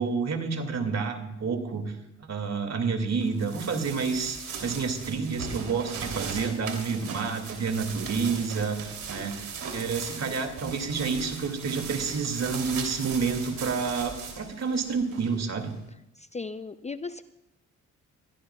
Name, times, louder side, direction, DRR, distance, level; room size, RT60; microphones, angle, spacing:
voice 1, 0.0-2.0 2.2-15.7, right 5 dB, 55° right, 5 dB, 2.4 m, -29 dB
sound 1, 3.2-15.7, right 5 dB, 75° right, 3.2 m, -38 dB
voice 2, 16.2-17.2, left 4 dB, 20° left, 12 dB, 0.5 m, -37 dB
22.0 x 17.0 x 2.4 m, 0.85 s
supercardioid pair, 65°, 32 cm